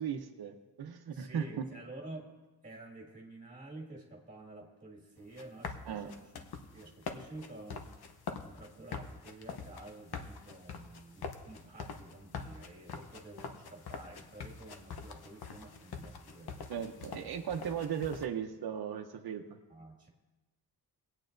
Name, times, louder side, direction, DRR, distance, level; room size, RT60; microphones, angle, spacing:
voice 1, 0.0-1.6 5.9-6.1 16.7-19.6, right 8 dB, 85° right, 4 dB, 0.8 m, -37 dB
voice 2, 1.1-2.3 2.6-6.4 6.7-17.3 19.7-20.1, right 2 dB, 20° right, -1 dB, 2.0 m, -50 dB
sound 1, 5.2-18.3, left 5 dB, 85° left, 0.9 m, -45 dB
21.0 x 8.9 x 2.6 m, 1.1 s
wide cardioid pair, 175°, 37 cm